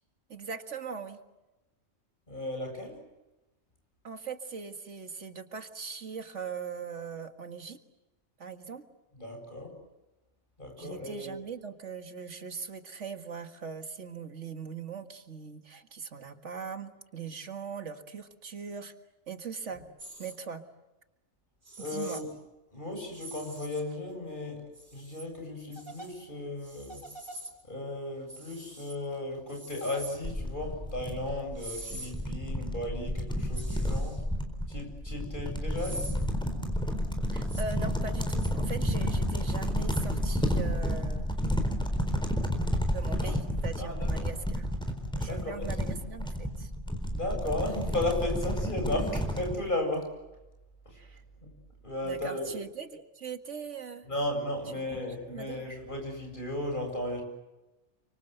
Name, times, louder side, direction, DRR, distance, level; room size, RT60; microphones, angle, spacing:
voice 1, 0.3-1.2 4.0-7.8 8.4-8.9 10.8-18.9 19.3-19.8 20.2-20.6 21.8-22.2 31.9-32.1 37.3-41.4 42.9-44.7 45.2-46.7 51.0-51.2 52.0-54.1 54.9-55.0 55.3-55.6, right 5 dB, 85° right, 7 dB, 2.2 m, -40 dB
voice 2, 2.3-3.0 9.2-9.8 10.6-11.4 21.8-22.3 22.7-24.6 24.9-27.0 27.7-34.2 34.7-36.1 43.2-43.3 43.8-44.3 45.3-45.7 47.1-50.1 50.8-51.0 51.4-51.5 51.8-52.6 54.1-57.2, left 1 dB, 45° left, 3 dB, 8.2 m, -35 dB
sound 1, 20.0-20.3 21.6-22.2 23.1-23.9 24.7-25.2 25.7-26.1 26.6-27.5 28.3-28.9 29.5-30.2 31.6-32.1 33.5-34.2 35.7-36.2 37.4-37.6 38.4-38.5, right 1 dB, 55° right, 5.5 m, -44 dB
sound 2, 30.2-49.6, equal, 5° left, 4.2 m, -31 dB
29.5 x 25.5 x 8.0 m, 1.0 s
omnidirectional pair, 1.2 m